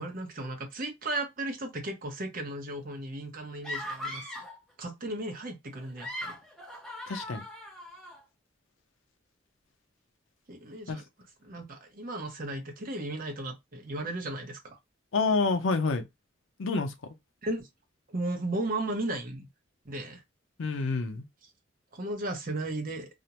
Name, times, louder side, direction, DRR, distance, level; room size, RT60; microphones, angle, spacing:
voice 1, 0.0-4.2 4.8-6.4 10.5-11.0 11.4-14.8 17.4-17.7 18.1-19.5 19.8-20.2 21.9-23.1, right 2 dB, 45° right, 0.7 m, -35 dB
sound 1, 3.6-4.6 5.8-8.2, left 1 dB, ahead, 0.7 m, -39 dB
voice 2, 7.1-7.5 10.9-11.0 15.1-16.1 16.6-16.9 20.6-21.3, left 3 dB, 90° left, 0.6 m, -28 dB
2.4 x 2.1 x 2.9 m
head